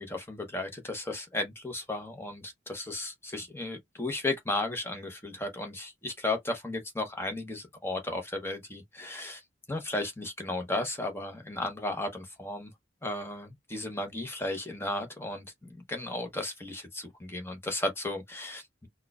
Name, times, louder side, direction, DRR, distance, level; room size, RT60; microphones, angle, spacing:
voice 1, 0.0-9.4 9.7-12.7 13.0-15.5 15.7-18.9, left 2 dB, 15° left, 0.8 m, -34 dB
4.4 x 2.3 x 2.3 m
head